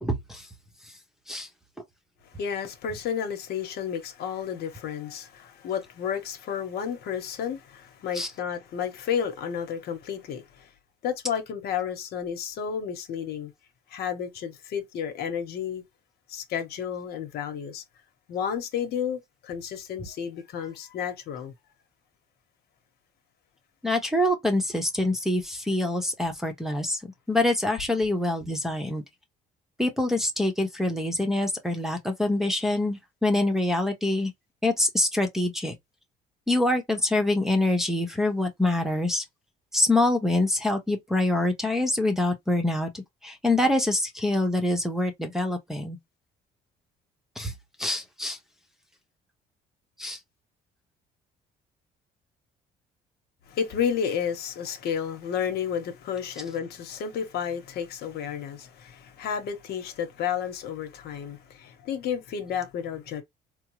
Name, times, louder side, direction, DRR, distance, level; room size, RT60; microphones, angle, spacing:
voice 1, 0.0-0.5 1.3-1.5 8.1-8.3 23.8-27.0 27.3-29.0 29.8-34.3 34.6-35.7 36.5-39.2 39.7-46.0 47.4-47.5 47.8-48.4 50.0-50.2, left 2 dB, ahead, 0.8 m, -25 dB
voice 2, 2.4-10.7 11.0-13.5 13.9-15.8 16.3-17.8 18.3-21.5 53.5-63.2, left 8 dB, 70° left, 1.0 m, -31 dB
3.6 x 2.0 x 3.0 m
cardioid pair, 110°, 17 cm